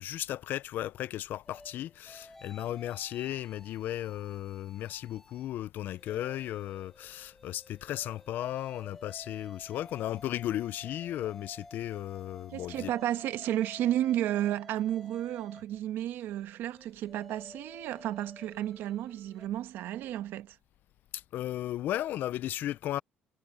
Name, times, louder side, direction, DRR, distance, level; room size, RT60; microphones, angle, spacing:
voice 1, 0.0-12.9 21.1-23.0, left 13 dB, 60° left, 0.3 m, -35 dB
sound 1, 1.5-5.5 5.9-19.5, left 1 dB, 10° left, 2.6 m, -53 dB
voice 2, 12.5-20.6, right 12 dB, 75° right, 1.2 m, -32 dB
cardioid pair, 155°, 4 cm